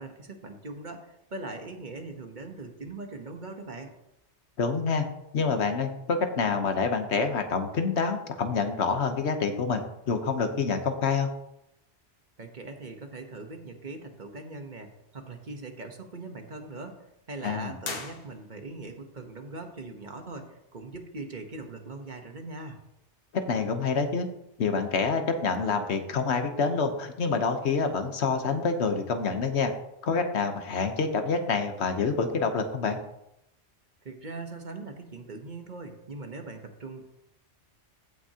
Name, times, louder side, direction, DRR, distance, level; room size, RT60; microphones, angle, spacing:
voice 1, 0.0-3.9 12.4-22.8 34.0-37.0, right 3 dB, 45° right, 5 dB, 1.1 m, -41 dB
voice 2, 4.6-5.0 5.3-11.3 17.4-17.8 23.3-24.3 24.6-29.7 30.0-33.0, left 5 dB, 70° left, 7 dB, 1.2 m, -27 dB
sound 1, 17.8-18.8, left 3 dB, 55° left, 1.3 m, -39 dB
15.5 x 6.0 x 2.8 m, 0.83 s
omnidirectional pair, 1.2 m